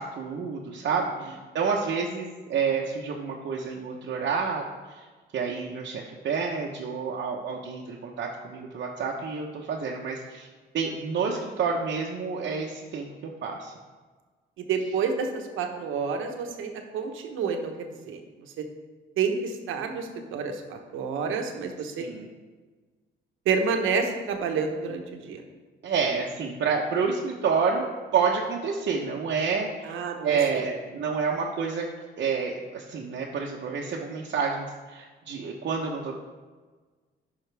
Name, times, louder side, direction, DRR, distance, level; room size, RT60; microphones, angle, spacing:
voice 1, 0.0-4.6 4.9-5.0 5.3-10.5 10.7-13.7 22.0-22.3 25.8-29.7 30.2-31.9 32.2-36.1, right 5 dB, 60° right, -2 dB, 1.0 m, -29 dB
voice 2, 14.6-18.2 19.2-22.1 23.4-25.4 29.8-30.4, right 5 dB, 85° right, 4 dB, 1.1 m, -29 dB
10.5 x 5.7 x 3.4 m, 1.4 s
cardioid pair, 90°, 20 cm